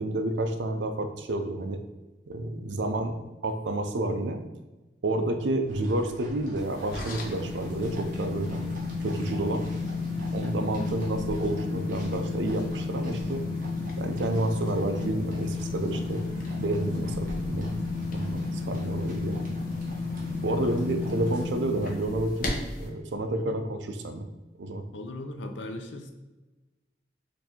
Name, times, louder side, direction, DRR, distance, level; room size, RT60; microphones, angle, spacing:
voice 1, 0.0-1.8 2.3-3.2 3.4-4.4 5.0-8.7 9.0-9.6 10.3-13.4 14.0-16.2 16.6-17.8 18.1-19.5 20.4-22.5 22.8-24.3 24.6-24.8, right 1 dB, 75° right, 6 dB, 0.5 m, -30 dB
sound 1, 5.7-21.5, right 1 dB, 50° right, 1.2 m, -46 dB
sound 2, 6.6-22.9, left 3 dB, 50° left, 0.8 m, -32 dB
voice 2, 20.6-21.1 23.3-23.6 24.9-26.1, left 2 dB, 85° left, 6 dB, 0.6 m, -39 dB
4.6 x 2.7 x 4.2 m, 1.1 s
head